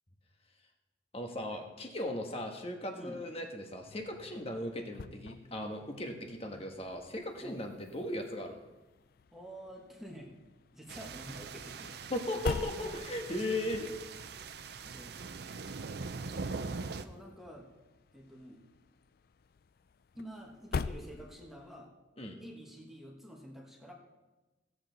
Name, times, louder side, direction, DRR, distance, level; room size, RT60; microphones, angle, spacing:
voice 1, 1.1-8.6 12.1-13.8 22.2-22.4, left 1 dB, 30° left, 3 dB, 1.3 m, -37 dB
sound 1, 3.7-21.8, left 5 dB, 55° left, 0.4 m, -46 dB
voice 2, 9.3-10.3 10.7-12.0 12.4-13.0 13.8-13.9 14.9-15.2 16.4-17.7 18.1-18.7 20.1-21.9 22.4-23.9, equal, ahead, -1 dB, 1.3 m, -49 dB
sound 2, 10.9-17.1, right 4 dB, 60° right, 0.6 m, -42 dB
16.0 x 8.2 x 4.0 m, 1.1 s
head